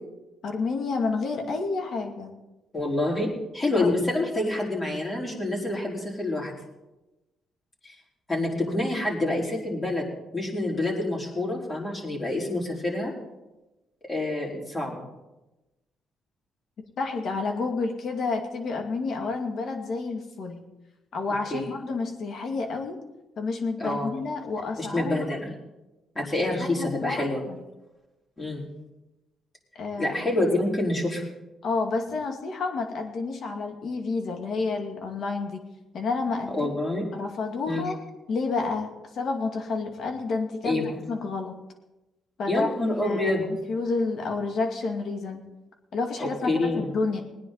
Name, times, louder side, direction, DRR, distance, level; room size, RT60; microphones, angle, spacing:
voice 1, 0.4-2.3 3.7-3.9 17.0-20.6 21.1-23.0 23.4-25.4 26.6-27.6 29.8-30.1 31.6-35.6 35.9-36.7 37.1-38.0 38.3-41.6 42.4-45.4 45.9-47.2, left 3 dB, 65° left, 4 dB, 2.2 m, -30 dB
voice 2, 2.7-3.3 3.5-6.6 7.8-7.9 8.3-10.1 10.3-13.1 14.1-15.0 21.5-21.7 23.8-24.1 24.8-25.5 26.1-27.4 28.4-28.6 30.0-31.2 36.5-37.1 37.7-37.9 40.6-41.0 42.5-43.5 46.2-46.9, left 2 dB, 25° left, -3 dB, 4.3 m, -27 dB
20.5 x 9.9 x 4.0 m, 1.0 s
cardioid pair, 90°, 0 cm